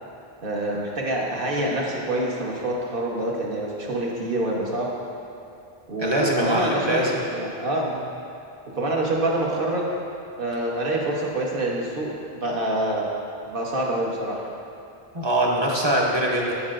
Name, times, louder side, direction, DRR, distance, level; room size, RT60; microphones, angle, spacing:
voice 1, 0.4-4.9 5.9-7.9 8.7-9.9 10.4-12.1 12.4-13.0 13.4-14.4, right 1 dB, 60° right, -3 dB, 1.2 m, -26 dB
voice 2, 6.0-7.1 7.8-7.9 15.1-16.5, right 1 dB, 30° right, -3 dB, 0.7 m, -23 dB
8.3 x 7.0 x 2.5 m, 2.7 s
omnidirectional pair, 1.1 m